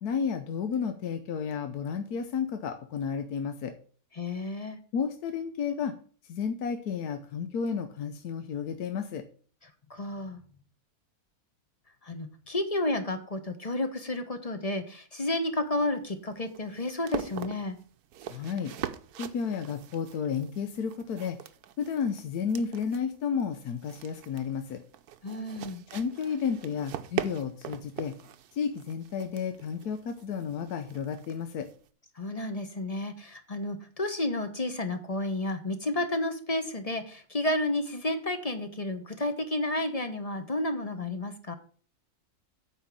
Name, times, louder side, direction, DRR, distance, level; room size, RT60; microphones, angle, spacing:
voice 1, 0.0-3.8 4.9-5.9 6.2-9.2 18.3-18.7 19.2-21.4 21.8-24.8 25.9-28.2 28.5-31.7, left 6 dB, 80° left, 7 dB, 1.3 m, -32 dB
voice 2, 4.2-4.8 9.9-10.4 12.0-17.8 25.2-25.8 32.2-41.5, left 1 dB, 25° left, 7 dB, 1.0 m, -31 dB
sound 1, 15.5-31.9, right 11 dB, 85° right, 1.2 m, -42 dB
9.0 x 4.5 x 7.5 m, 0.43 s
omnidirectional pair, 1.6 m